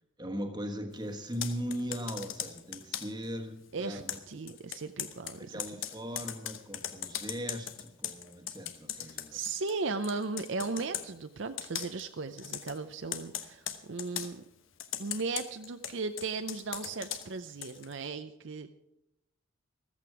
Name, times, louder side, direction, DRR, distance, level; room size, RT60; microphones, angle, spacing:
voice 1, 0.2-4.2 4.5-4.6 5.4-9.4, equal, 20° right, 5 dB, 1.4 m, -39 dB
Computer keyboard, 1.2-3.2 4.1-9.8 10.0-11.1 11.6-12.1 12.4-12.8 13.1-14.3 14.8-17.9, left 10 dB, 70° left, 1.1 m, -39 dB
voice 2, 3.7-5.5 9.3-14.4 15.0-18.7, right 4 dB, 60° right, 9 dB, 0.6 m, -36 dB
14.5 x 14.0 x 4.8 m, 0.86 s
head